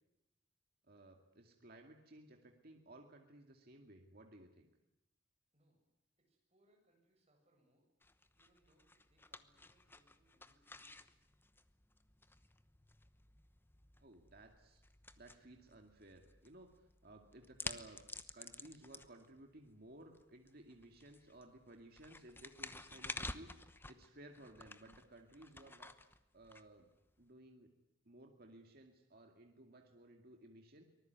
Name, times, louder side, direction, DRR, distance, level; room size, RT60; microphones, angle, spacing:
voice 1, 0.9-4.7 14.0-14.8 15.2-16.7 17.0-18.0 18.3-25.9 26.3-26.9 27.2-27.7 28.0-30.8, right 1 dB, 50° right, 3 dB, 2.3 m, -58 dB
voice 2, 6.2-7.9 8.3-11.2, right 1 dB, 35° right, 2 dB, 7.8 m, -75 dB
sound 1, 8.0-27.2, left 2 dB, 10° left, 1.0 m, -52 dB
24.5 x 20.0 x 9.5 m, 0.87 s
head